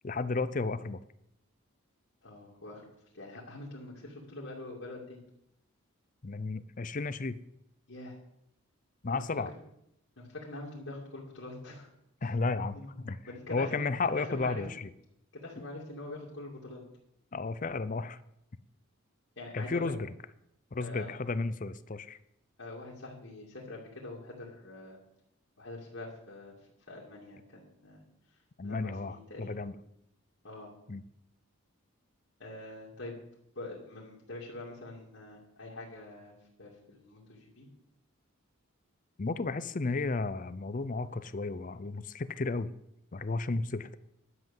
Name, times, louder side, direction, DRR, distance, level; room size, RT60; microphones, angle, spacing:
voice 1, 0.0-1.0 6.2-7.4 9.0-9.5 12.2-12.8 13.0-13.2 13.5-14.9 17.3-18.2 19.5-20.1 20.7-22.2 28.6-29.8 30.9-31.0 39.2-42.7 43.1-44.0, left 3 dB, 40° left, 15 dB, 0.5 m, -33 dB
voice 2, 2.2-5.2 7.9-8.2 9.1-9.2 10.2-11.9 12.2-12.3 12.7-12.9 13.2-13.8 14.1-14.6 15.3-16.8 19.4-19.9 20.8-21.1 22.6-25.0 25.6-26.6 26.9-28.0 28.6-29.7 30.4-30.7 32.4-33.2 33.5-36.3 36.6-37.7, left 2 dB, 65° left, -5 dB, 2.8 m, -44 dB
11.0 x 7.9 x 7.3 m, 0.78 s
head